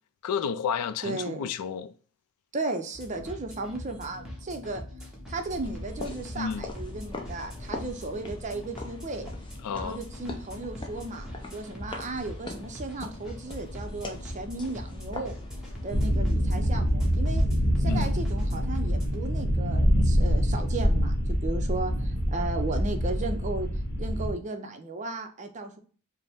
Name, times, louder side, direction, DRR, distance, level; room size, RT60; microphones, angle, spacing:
voice 1, 0.2-1.9 6.3-6.7 9.6-10.0 17.8-18.2, left 7 dB, 90° left, 0.4 m, -31 dB
voice 2, 1.0-1.5 2.5-4.8 5.3-9.3 9.7-15.3 15.8-17.4 17.8-23.7 24.0-25.8, right 2 dB, 35° right, 0.5 m, -35 dB
sound 1, 2.9-19.5, left 1 dB, 5° right, 0.8 m, -43 dB
sound 2, 5.3-16.2, left 2 dB, 20° left, 0.5 m, -41 dB
sound 3, 15.9-24.3, equal, 45° left, 1.0 m, -25 dB
5.1 x 2.0 x 3.4 m
head